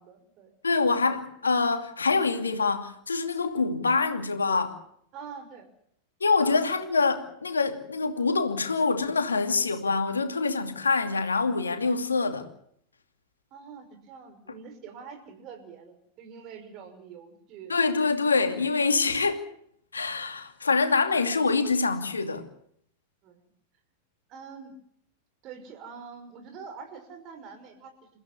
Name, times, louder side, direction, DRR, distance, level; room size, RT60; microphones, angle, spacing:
voice 1, 0.0-0.5 5.1-5.7 6.4-6.8 13.5-17.7 18.3-18.9 23.2-23.5 24.3-24.7 25.4-28.2, right 6 dB, 35° right, 5.7 m, -45 dB
voice 2, 0.6-4.8 6.2-12.5 17.7-19.4 19.9-22.4, left 4 dB, 75° left, 2.5 m, -25 dB
29.0 x 15.5 x 8.3 m
figure-of-eight pair, 90°, 0 cm